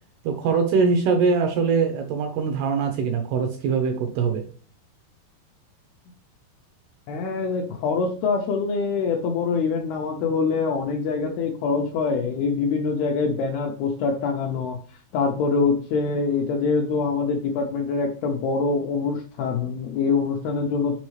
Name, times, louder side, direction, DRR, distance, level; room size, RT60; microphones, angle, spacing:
voice 1, 0.2-4.5, right 5 dB, 80° right, 4 dB, 2.4 m, -22 dB
voice 2, 7.1-14.8 15.1-21.0, left 4 dB, 80° left, 1 dB, 2.3 m, -24 dB
7.1 x 5.1 x 3.1 m, 0.40 s
omnidirectional pair, 5.2 m